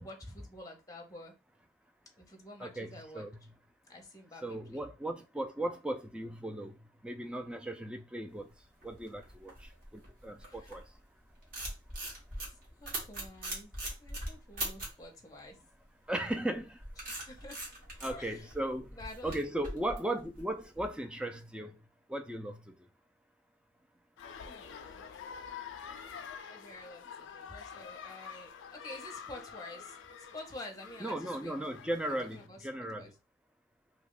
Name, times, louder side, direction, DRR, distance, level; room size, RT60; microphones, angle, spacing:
voice 1, 0.0-1.3 2.2-3.3 3.9-4.9 10.5-10.7 12.4-13.7 14.0-15.6 16.2-16.3 17.0-17.7 18.1-18.5 18.9-19.4 24.3-25.3 26.2-30.0 30.3-31.6 32.3-32.7 32.9-33.1, left 2 dB, 20° left, 0.7 m, -49 dB
voice 2, 2.6-3.4 4.4-6.8 7.0-8.5 8.8-10.8 16.1-16.8 18.0-21.7 22.1-22.7 31.0-33.1, right 1 dB, 5° right, 0.3 m, -37 dB
sound 1, 8.6-11.0 11.3-15.0 16.3-20.8, right 1 dB, 50° right, 1.3 m, -41 dB
sound 2, 24.2-32.5, left 7 dB, 75° left, 0.4 m, -47 dB
2.8 x 2.3 x 3.7 m
head